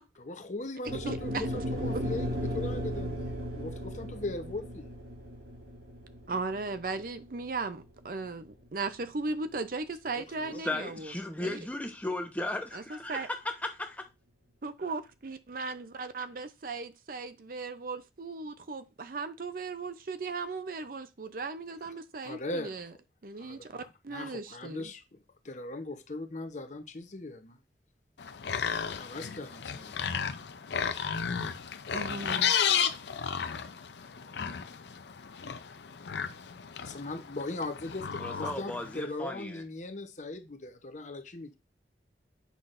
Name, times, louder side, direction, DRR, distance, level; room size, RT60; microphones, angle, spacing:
voice 1, 0.2-4.9 10.1-10.8 22.2-22.8 23.4-25.2 25.4-27.6 28.8-30.0 36.8-41.6, left 2 dB, 45° left, 0.8 m, -39 dB
voice 2, 0.8-1.6 6.3-11.1 11.4-11.6 12.7-13.3 14.6-22.9 23.2-24.9 31.9-32.6, right 3 dB, 55° right, 0.6 m, -37 dB
sound 1, 0.9-9.1, equal, 80° right, 3.3 m, -36 dB
voice 3, 10.6-14.0 38.2-39.6, left 2 dB, 10° left, 0.8 m, -36 dB
Pigs oinking, 28.2-39.0, left 7 dB, 80° left, 0.6 m, -33 dB
8.2 x 5.8 x 2.5 m
head